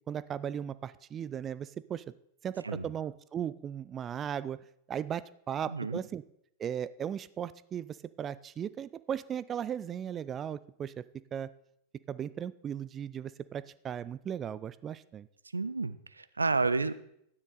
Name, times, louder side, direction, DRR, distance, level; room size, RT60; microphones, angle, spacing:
voice 1, 0.1-2.0 2.4-4.6 4.9-6.2 6.6-11.0 11.3-11.5 12.1-15.3, right 9 dB, 25° right, 16 dB, 0.4 m, -37 dB
voice 2, 5.7-6.0 15.5-16.9, right 3 dB, 80° right, 14 dB, 0.5 m, -30 dB
12.5 x 9.7 x 4.1 m, 0.74 s
figure-of-eight pair, 90°, 0 cm